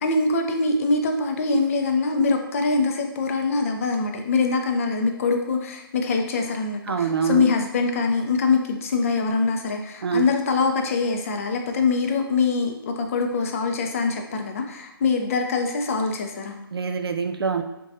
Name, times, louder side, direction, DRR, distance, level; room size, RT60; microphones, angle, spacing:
voice 1, 0.0-16.5, left 4 dB, 35° left, 4 dB, 0.4 m, -23 dB
voice 2, 6.9-7.5 10.0-10.3 16.7-17.6, right 6 dB, 85° right, 7 dB, 0.4 m, -24 dB
3.9 x 2.2 x 2.6 m, 0.93 s
hypercardioid pair, 150°, 13 cm